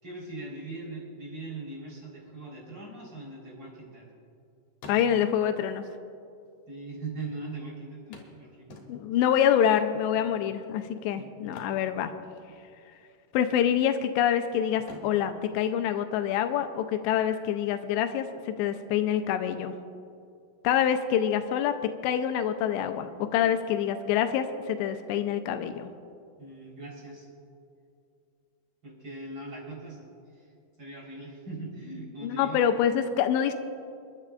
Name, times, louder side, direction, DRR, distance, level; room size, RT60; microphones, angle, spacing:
voice 1, 0.0-4.1 6.7-8.8 10.2-10.3 11.2-11.3 26.4-27.3 28.8-30.0 30.3-30.5 30.8-32.6, right 2 dB, 30° right, -5 dB, 4.6 m, -40 dB
sound 1, 3.4-4.4 4.7-5.5 6.5-6.6 6.8-6.9 8.1-9.3 11.4-12.7 12.9-13.2 13.7-14.3 14.8-16.5 18.5-18.6 19.1-19.2, left 2 dB, 55° left, 2.9 m, -49 dB
voice 2, 4.9-5.8 8.9-12.1 13.3-19.7 20.6-25.9 32.2-33.5, left 9 dB, 90° left, 8 dB, 2.9 m, -26 dB
29.0 x 11.5 x 2.5 m, 2.4 s
omnidirectional pair, 4.9 m